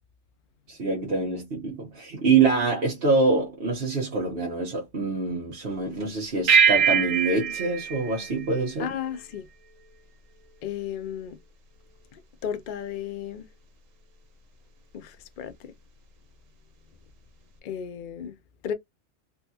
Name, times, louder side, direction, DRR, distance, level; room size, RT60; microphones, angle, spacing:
voice 1, 0.7-8.9, right 4 dB, 50° right, 1.1 m, -25 dB
sound 1, 6.5-9.2, right 7 dB, 90° right, 1.1 m, -23 dB
voice 2, 8.8-9.5 10.6-11.4 12.1-13.5 14.9-15.7 17.6-18.4 18.6-18.7, left 9 dB, 60° left, 0.5 m, -34 dB
3.4 x 2.3 x 2.7 m
omnidirectional pair, 1.3 m